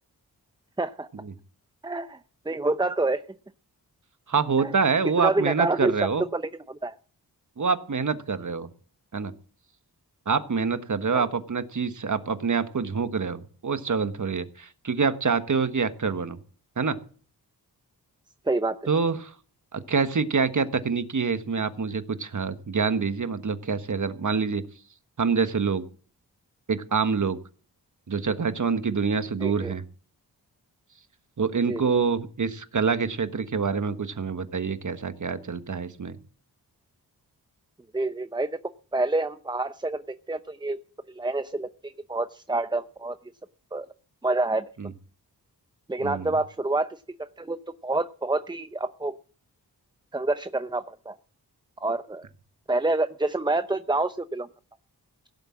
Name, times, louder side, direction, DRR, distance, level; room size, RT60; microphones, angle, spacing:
voice 1, 0.8-1.1 1.8-2.2 2.5-3.2 4.6-4.7 5.2-5.9 6.3-7.0 11.1-11.2 18.5-18.8 29.4-29.7 31.7-31.9 37.9-38.6 38.9-40.0 40.3-40.8 41.1-43.2 43.7-43.9 44.2-44.6 45.9-47.6 47.8-49.1 50.1-51.2 51.8-52.3 52.7-54.5, right 2 dB, 10° right, 12 dB, 0.7 m, -27 dB
voice 2, 4.3-6.2 7.6-8.7 9.1-9.3 10.3-16.4 16.8-17.0 18.9-19.3 19.7-24.6 25.2-25.8 26.7-27.4 28.1-29.8 31.4-36.2 44.8-44.9 46.0-46.3, right 5 dB, 50° right, 11 dB, 1.4 m, -26 dB
16.5 x 7.6 x 7.4 m, 0.42 s
cardioid pair, 55°, 39 cm